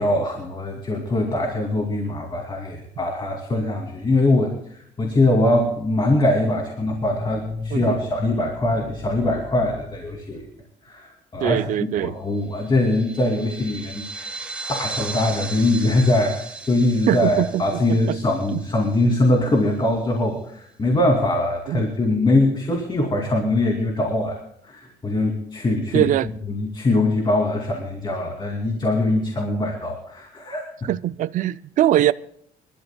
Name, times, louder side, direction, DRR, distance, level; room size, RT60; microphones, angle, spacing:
voice 1, 0.0-10.5 10.8-11.6 12.0-26.1 26.5-30.9, left 2 dB, 25° left, 2.6 m, -22 dB
voice 2, 11.4-12.1 17.1-17.6 18.1-18.2 18.5-18.6 21.7-21.9 25.9-26.3 30.8-32.1, right 12 dB, 50° right, 0.4 m, -21 dB
sound 1, 12.5-19.4, right 3 dB, 5° right, 2.8 m, -36 dB
28.5 x 12.5 x 2.3 m
cardioid pair, 110°, 17 cm